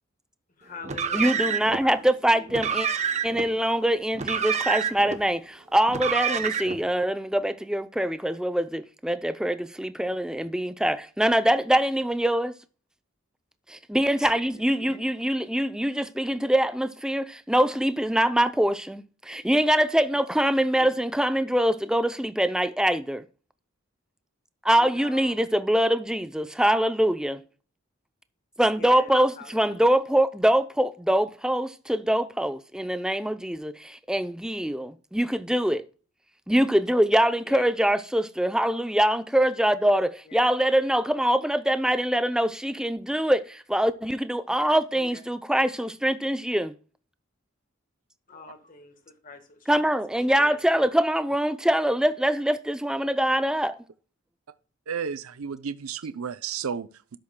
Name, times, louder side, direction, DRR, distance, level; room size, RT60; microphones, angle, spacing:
voice 1, 0.6-2.5 14.5-15.0 20.8-20.9 24.8-25.4 28.8-29.9 37.4-37.7 40.3-40.5 44.9-45.2 48.3-49.7 50.2-50.9, left 3 dB, 40° left, 1.4 m, -45 dB
Car, 0.8-1.8 2.5-3.5 4.1-5.2 5.9-6.8, right 7 dB, 30° right, 0.8 m, -27 dB
voice 2, 1.1-2.9 3.2-12.5 13.7-23.2 24.6-27.4 28.6-35.8 36.5-46.7 49.7-53.8, right 1 dB, 5° right, 0.5 m, -24 dB
voice 3, 54.9-57.2, right 6 dB, 85° right, 0.5 m, -33 dB
12.5 x 10.5 x 2.2 m
head